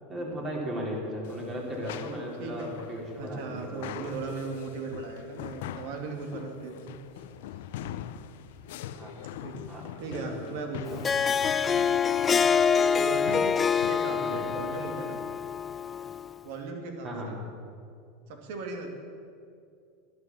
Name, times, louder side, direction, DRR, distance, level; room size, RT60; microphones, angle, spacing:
voice 1, 0.1-4.2 9.0-9.1 9.7-10.4 14.2-14.4 17.0-17.3, equal, 30° right, -2 dB, 3.8 m, -36 dB
sound 1, 1.2-14.1, left 10 dB, 75° left, 0.6 m, -43 dB
voice 2, 3.2-6.9 9.4-9.6 10.0-11.1 13.0-13.6 13.8-15.2 16.4-17.4 18.3-18.9, right 3 dB, 70° right, 4 dB, 2.3 m, -37 dB
Harp, 10.9-16.3, left 6 dB, 25° left, 0.4 m, -26 dB
11.5 x 11.0 x 7.0 m, 2.4 s
supercardioid pair, 120°, 0 cm